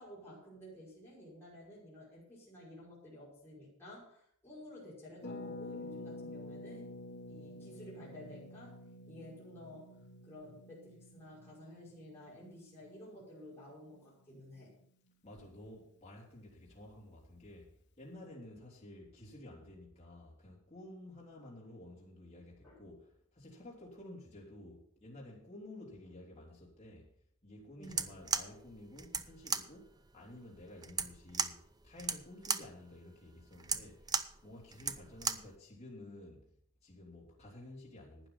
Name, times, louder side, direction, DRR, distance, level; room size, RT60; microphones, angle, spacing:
voice 1, 0.0-6.9 7.3-10.0 10.2-14.7 22.6-22.8 27.8-28.1, left 1 dB, 10° left, 5.7 m, -52 dB
Harp, 5.2-14.8 15.1-15.2 15.4-15.7, left 2 dB, 50° left, 1.2 m, -49 dB
voice 2, 15.2-27.1 27.4-31.6 31.8-36.5 36.8-38.3, left 1 dB, 30° left, 3.5 m, -52 dB
sound 1, 27.8-35.6, right 5 dB, 15° right, 0.5 m, -37 dB
12.0 x 9.5 x 5.7 m
head